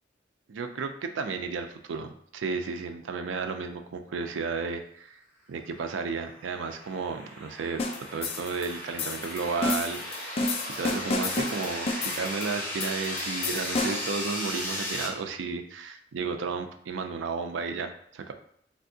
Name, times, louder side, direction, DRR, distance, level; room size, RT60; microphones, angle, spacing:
voice 1, 0.5-5.1 5.5-10.4 10.8-18.3, right 4 dB, 90° right, 6 dB, 0.4 m, -33 dB
sound 1, 6.1-15.1, left 1 dB, 10° left, 0.9 m, -36 dB
sound 2, 7.8-14.2, left 2 dB, 30° left, 0.3 m, -32 dB
3.4 x 2.7 x 2.7 m, 0.67 s
head